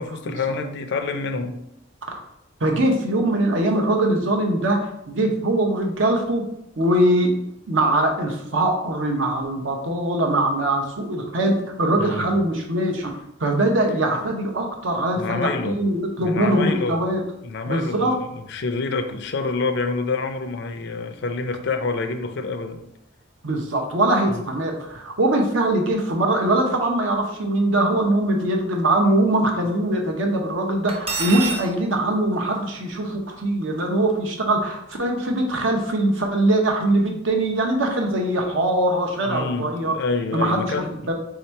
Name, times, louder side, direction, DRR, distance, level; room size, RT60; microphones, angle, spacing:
voice 1, 0.0-1.6 2.6-2.8 12.0-12.3 15.2-15.8 16.2-17.0 17.4-22.8 24.3-24.4 39.2-41.1, left 3 dB, 60° left, 7 dB, 0.4 m, -27 dB
voice 2, 2.6-6.4 6.8-7.3 7.7-11.5 11.8-17.2 17.7-18.1 23.4-40.0 40.3-41.1, right 1 dB, 70° right, 2 dB, 0.8 m, -22 dB
Cutlery silverware, 30.9-31.7, right 4 dB, 30° right, 0.7 m, -26 dB
3.5 x 2.8 x 4.4 m, 0.79 s
head